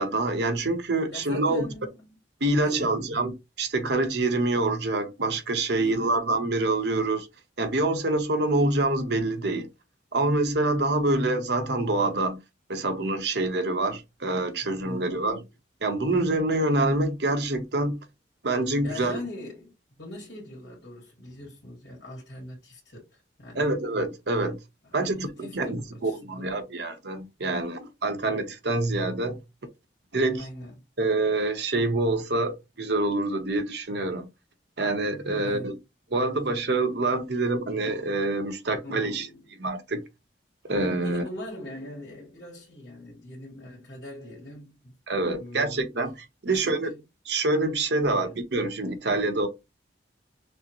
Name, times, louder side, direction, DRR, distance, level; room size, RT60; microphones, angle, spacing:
voice 1, 0.0-1.7 2.4-7.3 7.6-9.7 10.1-12.4 12.7-15.4 15.8-18.0 18.4-19.2 23.6-24.6 24.9-29.4 30.1-30.4 31.0-34.3 34.8-35.7 36.1-39.3 39.6-40.0 40.7-41.2 45.1-46.1 46.4-46.9 47.3-49.5, right 2 dB, 65° right, 0.9 m, -26 dB
voice 2, 1.1-2.2 2.5-3.1 5.7-6.2 14.8-15.4 18.8-19.7 20.0-23.7 25.0-26.6 30.3-30.8 35.3-35.8 38.8-39.6 41.0-45.0 45.3-45.8 46.4-47.0 48.0-48.4, left 1 dB, 70° left, 1.8 m, -42 dB
6.2 x 2.1 x 2.9 m
head